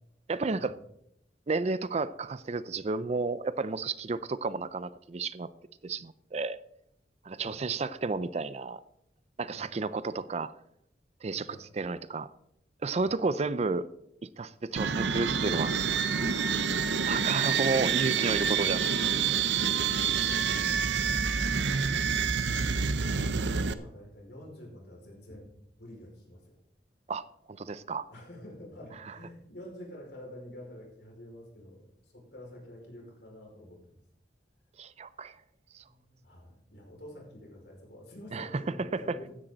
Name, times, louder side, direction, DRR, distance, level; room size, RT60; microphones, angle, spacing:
voice 1, 0.3-0.7 1.5-5.5 5.8-6.6 7.2-8.8 9.4-10.5 11.2-12.3 12.8-13.9 14.4-15.7 17.0-18.9 27.1-28.1 34.8-35.3 38.3-38.5 38.9-39.0, right 3 dB, 35° right, 0.5 m, -32 dB
sound 1, 14.8-23.7, right 6 dB, 80° right, 0.7 m, -28 dB
voice 2, 20.2-21.7 22.8-23.0 23.4-25.5 25.8-26.6 28.1-34.0 35.8-39.3, left 1 dB, 70° left, 5.2 m, -48 dB
15.5 x 10.5 x 3.9 m
head